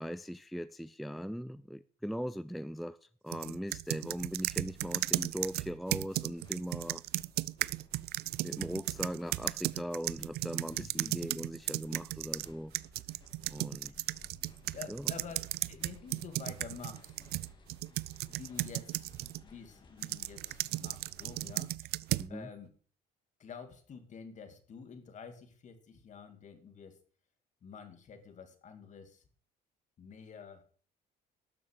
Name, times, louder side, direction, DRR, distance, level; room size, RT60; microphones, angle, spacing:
voice 1, 0.0-7.0 8.4-12.7 13.5-13.9 14.9-15.1 22.2-22.5, equal, ahead, 0.4 m, -40 dB
sound 1, 3.3-12.5 12.7-19.4 20.0-22.3, right 17 dB, 70° right, 0.4 m, -35 dB
sound 2, 4.1-21.7, left 3 dB, 30° left, 2.4 m, -60 dB
voice 2, 10.7-11.1 13.9-14.0 14.7-17.2 17.9-18.0 18.3-22.0 22.3-22.7 23.4-27.0 27.6-29.2 30.0-30.6, left 6 dB, 45° left, 2.3 m, -49 dB
12.5 x 7.0 x 6.4 m
cardioid pair, 110°, 17 cm